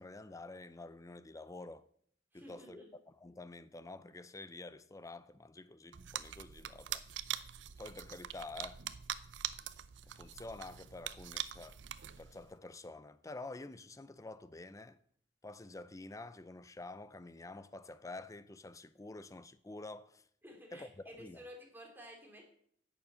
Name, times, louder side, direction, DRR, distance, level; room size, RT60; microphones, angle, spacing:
voice 1, 0.0-1.8 2.3-2.8 3.2-7.0 7.8-8.8 10.1-11.8 12.2-15.0 15.4-20.2 20.7-20.9 21.2-21.4, left 2 dB, 20° left, 0.5 m, -48 dB
voice 2, 2.3-2.9 20.4-22.5, equal, 10° right, 3.1 m, -52 dB
sound 1, 5.9-12.5, right 11 dB, 75° right, 0.6 m, -44 dB
11.0 x 7.0 x 8.1 m
head